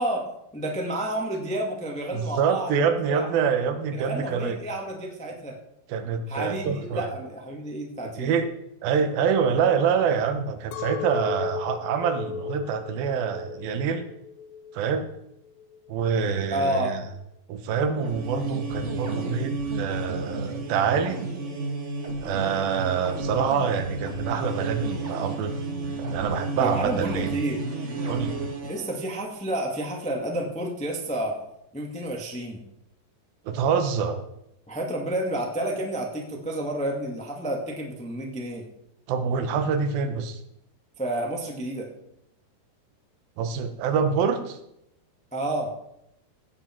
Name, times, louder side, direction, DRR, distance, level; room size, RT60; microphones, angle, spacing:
voice 1, 0.0-3.3 3.9-5.6 6.3-8.4 16.5-16.9 26.6-27.6 28.6-31.4 31.7-32.6 34.7-38.7 41.0-41.9 45.3-45.8, right 1 dB, 10° left, 0 dB, 0.3 m, -30 dB
voice 2, 2.1-4.6 5.9-7.1 8.2-8.5 8.8-14.1 14.7-15.1 15.9-17.0 17.5-21.2 22.2-25.5 26.0-27.3 28.1-28.4 33.5-34.2 39.1-40.4 43.4-44.6, right 6 dB, 85° right, 8 dB, 2.9 m, -26 dB
Chink clink, 10.7-15.0 15.4-16.0, left 7 dB, 85° left, 2.4 m, -36 dB
sound 1, 17.9-28.9, right 3 dB, 50° right, 0.8 m, -32 dB
16.5 x 8.4 x 4.5 m, 0.80 s
omnidirectional pair, 4.1 m